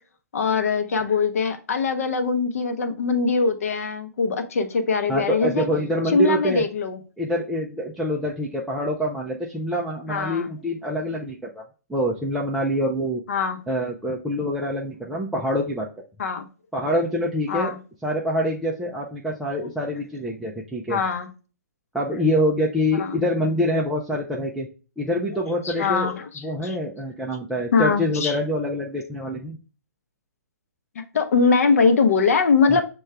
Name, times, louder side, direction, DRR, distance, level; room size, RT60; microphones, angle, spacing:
voice 1, 0.3-5.7 6.1-7.0 10.1-10.5 13.3-13.6 16.2-16.5 17.5-17.8 20.9-21.3 22.9-23.2 25.6-26.8 27.7-28.4 31.0-32.8, left 5 dB, 55° left, 0.7 m, -22 dB
voice 2, 5.1-6.6 7.2-11.6 11.9-13.2 13.7-15.9 16.7-17.7 18.0-21.0 21.9-24.7 25.0-26.1 26.4-29.6 32.7-32.8, equal, ahead, 0.3 m, -25 dB
6.2 x 2.3 x 3.2 m
figure-of-eight pair, 130°, 9 cm